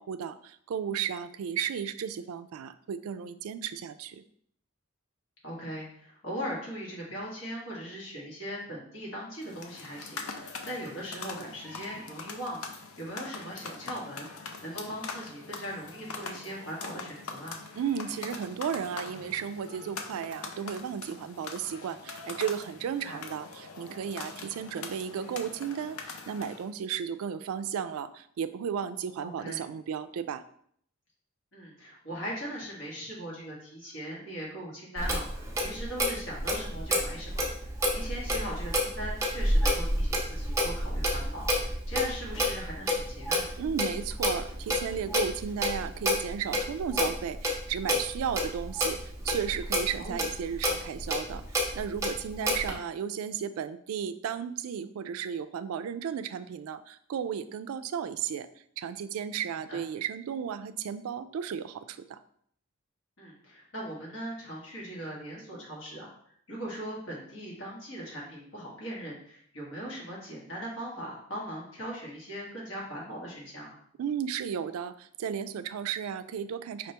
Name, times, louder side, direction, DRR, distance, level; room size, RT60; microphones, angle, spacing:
voice 1, 0.0-4.2 17.8-30.4 43.6-49.0 49.2-58.5 58.8-62.2 74.0-76.9, right 8 dB, 85° right, 12 dB, 0.3 m, -34 dB
voice 2, 5.4-17.6 23.0-23.2 29.2-29.6 31.5-43.5 50.0-50.2 59.7-59.8 63.2-66.1 66.5-73.8, equal, 60° left, -4 dB, 1.6 m, -40 dB
sound 1, 9.4-26.7, left 4 dB, 85° left, 0.6 m, -43 dB
Clock, 35.0-52.7, equal, 15° right, 0.6 m, -30 dB
5.0 x 3.3 x 2.9 m, 0.63 s
head